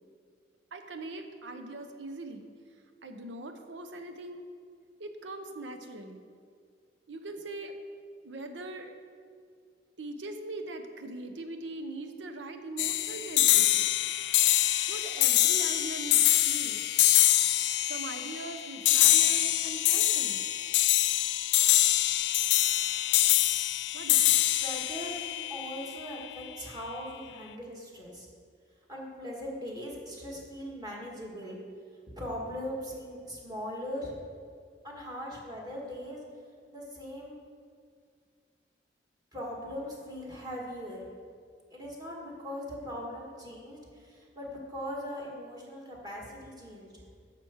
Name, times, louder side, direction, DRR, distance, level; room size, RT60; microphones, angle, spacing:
voice 1, 0.7-2.5 3.0-4.4 5.0-6.2 7.1-7.8 8.2-8.9 10.0-13.9 14.9-16.8 17.9-20.4 23.9-24.4, right 2 dB, 90° right, 6 dB, 0.7 m, -41 dB
sound 1, 12.8-26.2, left 14 dB, 75° left, 0.4 m, -25 dB
voice 2, 24.6-25.1 25.5-28.3 28.9-31.6 32.2-34.1 34.8-36.2 36.7-37.4 39.3-41.1 41.7-47.0, equal, 20° right, -3 dB, 1.8 m, -40 dB
7.4 x 5.9 x 7.2 m, 2.1 s
head